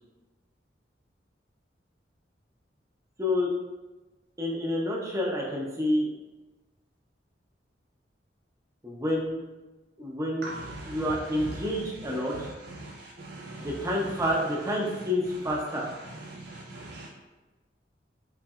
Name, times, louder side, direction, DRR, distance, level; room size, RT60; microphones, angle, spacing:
voice 1, 3.2-3.5 4.4-6.1 8.8-9.4 10.0-10.5 10.9-12.5 13.6-15.9, left 1 dB, 20° right, -2 dB, 0.8 m, -28 dB
voice 2, 10.4-11.0 12.7-12.9 13.2-13.7 16.3-17.1, right 2 dB, 65° right, -4 dB, 0.6 m, -41 dB
5.7 x 3.2 x 2.4 m, 1.1 s
head